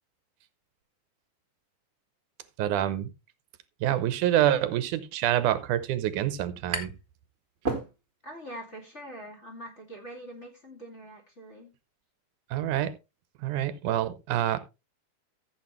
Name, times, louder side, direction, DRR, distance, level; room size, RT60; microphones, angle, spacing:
voice 1, 2.6-3.1 3.8-6.9 12.5-12.9 13.4-14.6, right 12 dB, 80° right, 2.4 m, -26 dB
sound 1, 6.1-7.1 7.4-8.4, right 3 dB, 25° right, 1.6 m, -34 dB
voice 2, 8.2-11.7, right 1 dB, 25° left, 2.4 m, -43 dB
14.5 x 7.9 x 3.1 m
omnidirectional pair, 3.5 m